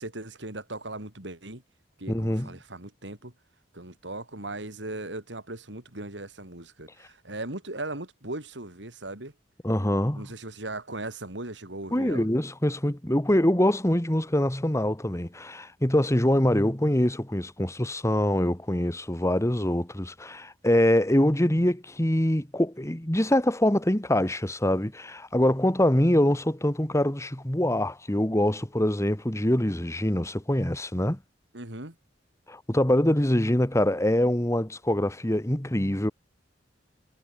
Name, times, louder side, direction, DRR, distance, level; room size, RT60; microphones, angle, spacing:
voice 1, 0.0-1.6 2.0-3.3 3.7-9.3 10.1-12.3 31.5-31.9, right 2 dB, 75° right, 4.7 m, -38 dB
voice 2, 2.1-2.5 9.6-10.3 11.9-31.2 32.5-36.1, left 1 dB, 15° left, 1.9 m, -24 dB
head